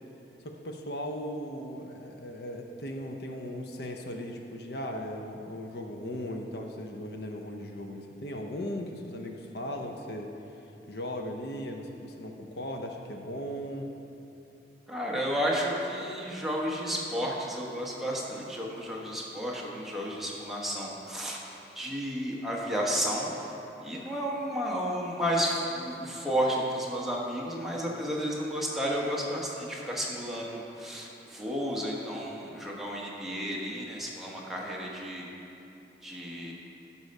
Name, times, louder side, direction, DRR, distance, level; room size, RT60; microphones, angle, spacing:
voice 1, 0.4-10.3 10.9-13.9, equal, 65° left, 3 dB, 0.7 m, -37 dB
voice 2, 14.9-21.4 21.7-23.5 23.8-35.3 36.0-36.5, equal, ahead, -4 dB, 1.2 m, -32 dB
13.0 x 5.6 x 5.3 m, 2.9 s
head